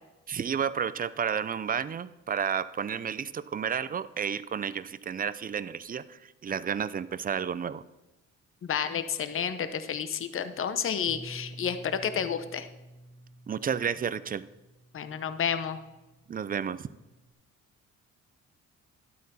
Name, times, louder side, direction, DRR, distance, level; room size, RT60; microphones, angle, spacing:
voice 1, 0.3-7.8 13.5-14.4 16.3-16.9, right 7 dB, 30° right, 16 dB, 0.5 m, -31 dB
voice 2, 8.6-12.7 14.9-15.8, left 8 dB, 45° left, 11 dB, 0.8 m, -30 dB
Bass guitar, 11.1-17.3, right 1 dB, 10° right, 1.1 m, -50 dB
12.0 x 8.3 x 4.2 m, 1.0 s
cardioid pair, 90°, 30 cm